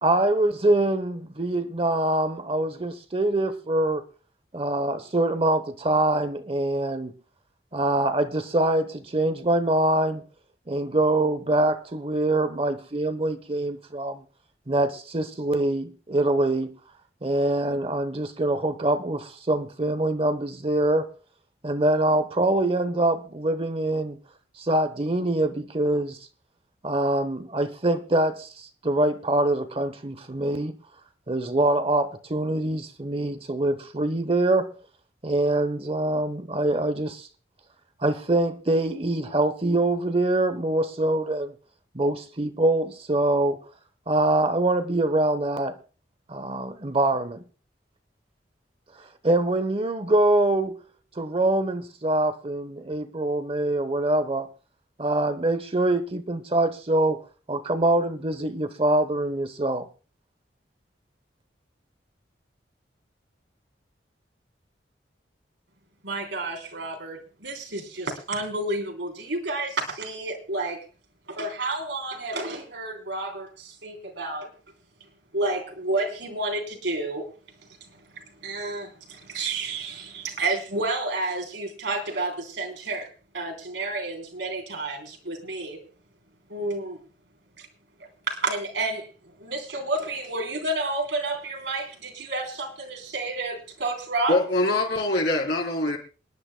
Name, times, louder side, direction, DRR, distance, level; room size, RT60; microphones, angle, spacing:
voice 1, 0.0-4.0 4.5-7.1 7.7-10.2 10.7-14.2 14.7-16.7 17.2-21.1 21.6-24.2 24.6-26.2 26.8-30.7 31.3-34.7 35.2-37.3 38.0-41.5 41.9-43.6 44.1-45.8 46.3-47.4 49.2-50.8 51.2-54.5 55.0-59.9, right 1 dB, 30° right, 0.9 m, -24 dB
voice 2, 66.0-70.8 71.3-74.5 75.3-77.2 78.4-83.1 83.3-85.8 86.5-87.0 87.6-87.7 88.0-89.1 89.4-94.4, right 2 dB, 85° right, 3.6 m, -30 dB
voice 3, 94.3-96.0, left 2 dB, 65° left, 3.9 m, -23 dB
27.5 x 10.5 x 2.2 m
head